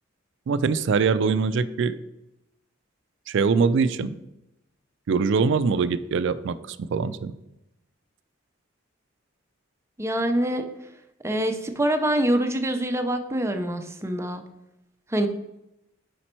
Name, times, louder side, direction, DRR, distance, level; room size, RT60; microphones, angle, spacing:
voice 1, 0.5-2.0 3.3-4.2 5.1-7.3, right 5 dB, 65° right, 14 dB, 0.4 m, -23 dB
voice 2, 10.0-10.6 11.2-14.4 15.1-15.3, right 1 dB, 15° right, 6 dB, 0.5 m, -25 dB
5.1 x 4.3 x 4.4 m, 0.87 s
head